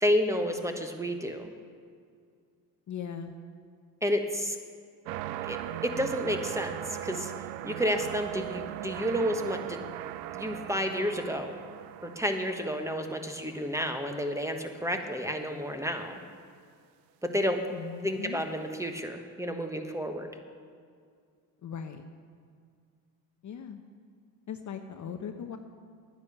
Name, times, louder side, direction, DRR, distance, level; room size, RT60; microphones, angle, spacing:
voice 1, 0.0-1.5 4.0-4.6 5.4-9.8 10.3-11.6 12.0-16.2 17.2-17.6 18.0-20.4, equal, 5° right, 5 dB, 1.3 m, -31 dB
voice 2, 2.9-3.3 17.7-18.4 21.6-22.0 23.4-23.8 24.5-25.6, left 7 dB, 35° left, 7 dB, 0.8 m, -39 dB
sound 1, 5.1-14.2 14.8-14.9, right 13 dB, 90° right, 0.6 m, -39 dB
10.5 x 9.7 x 6.9 m, 2.1 s
hypercardioid pair, 75°, 49 cm